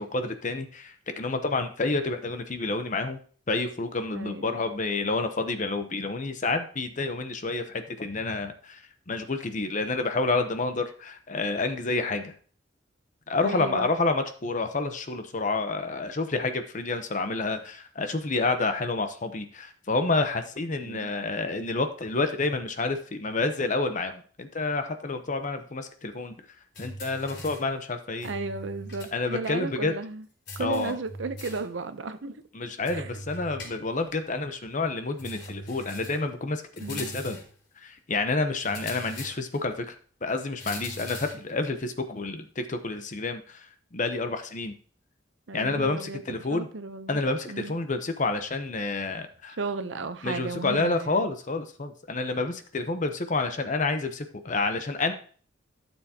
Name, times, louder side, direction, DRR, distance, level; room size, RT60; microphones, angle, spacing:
voice 1, 0.0-3.2 3.5-12.3 13.3-26.3 26.8-28.3 29.1-29.9 30.6-31.0 32.5-37.4 37.8-44.7 45.5-46.7 47.1-49.6 50.2-55.1, left 3 dB, 40° left, 0.8 m, -29 dB
voice 2, 4.1-4.6 13.4-13.9 20.8-21.1 28.2-30.2 30.6-32.4 32.9-33.1 36.8-37.1 45.5-46.2 46.5-47.2 47.5-47.7 49.6-51.2, right 3 dB, 70° right, 0.7 m, -34 dB
sound 1, 26.7-27.7 28.2-29.2 29.4-29.5 30.5-31.7 32.9-34.1 35.2-36.3 36.8-37.6 38.6-39.7 40.6-41.5, left 1 dB, 60° left, 4.3 m, -41 dB
12.5 x 7.1 x 2.9 m
head